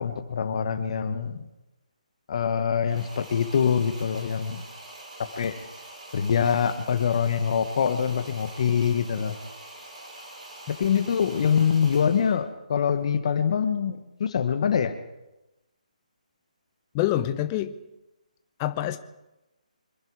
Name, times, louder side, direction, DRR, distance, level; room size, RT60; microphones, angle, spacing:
voice 1, 0.0-1.5 2.3-4.6 5.4-5.5 6.1-9.4 10.8-14.9, left 7 dB, 50° left, 9 dB, 1.4 m, -24 dB
sound 1, 2.9-12.4, right 2 dB, 65° right, 5.6 m, -44 dB
voice 2, 16.9-17.7 18.6-19.0, left 13 dB, 25° left, 10 dB, 0.8 m, -26 dB
25.5 x 10.5 x 4.8 m, 0.97 s
figure-of-eight pair, 150°, 4 cm